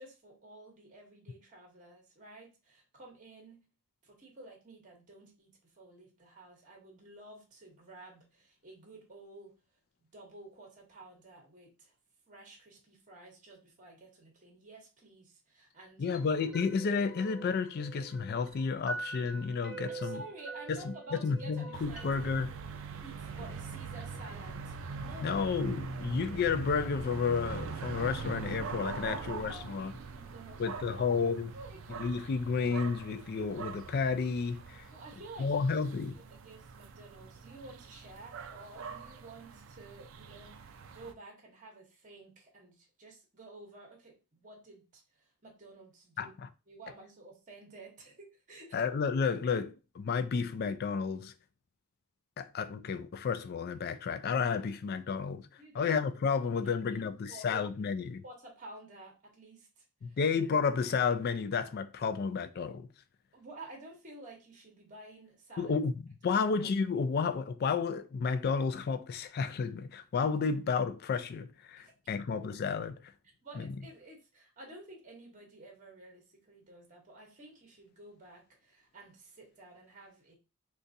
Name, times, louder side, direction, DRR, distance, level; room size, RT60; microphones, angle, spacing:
voice 1, 0.0-3.6 4.0-9.5 10.0-11.9 12.3-16.2 19.9-22.2 23.0-25.5 25.9-26.2 29.0-31.1 31.5-31.8 34.9-35.8 36.1-46.3 46.7-48.9 55.6-56.0 56.4-57.6 58.2-60.2 63.3-65.7 66.2-66.4 71.8-71.9 73.4-80.4, right 2 dB, 35° right, 1.0 m, -52 dB
voice 2, 16.0-20.2 20.7-20.8 21.2-22.5 25.2-29.9 30.6-31.5 32.0-34.9 35.4-36.1 46.2-46.5 48.7-51.3 52.4-58.2 60.0-62.9 65.6-65.9 66.2-73.1 73.6-73.7, left 5 dB, 45° left, 0.3 m, -31 dB
sound 1, 16.1-22.3, right 3 dB, 5° right, 0.9 m, -44 dB
sound 2, 21.7-41.1, right 5 dB, 60° right, 0.4 m, -43 dB
3.9 x 2.4 x 2.6 m
head